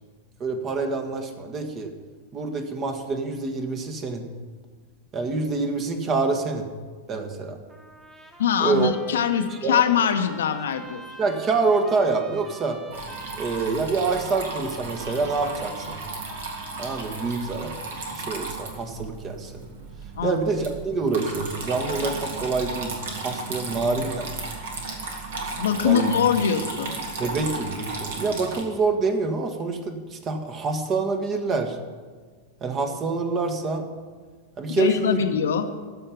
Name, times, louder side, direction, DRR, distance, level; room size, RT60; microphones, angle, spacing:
voice 1, 0.4-1.9 2.3-4.3 5.1-6.7 7.1-7.6 8.6-8.9 9.6-9.8 11.2-12.8 13.4-16.0 16.8-17.8 18.1-19.6 20.2-22.9 23.2-24.5 25.8-26.1 27.2-31.8 32.6-33.9 34.6-35.2, right 4 dB, 30° right, 6 dB, 1.4 m, -26 dB
Trumpet, 7.7-17.4, right 1 dB, 10° right, 1.6 m, -47 dB
voice 2, 8.4-11.0 20.2-20.4 25.6-27.0 34.7-35.7, left 7 dB, 60° left, 7 dB, 0.9 m, -23 dB
Water tap faucet / Trickle dribble, 12.9-28.6, right 3 dB, 60° right, 2.0 m, -34 dB
14.0 x 5.6 x 9.1 m, 1.5 s
figure-of-eight pair, 90°, 0 cm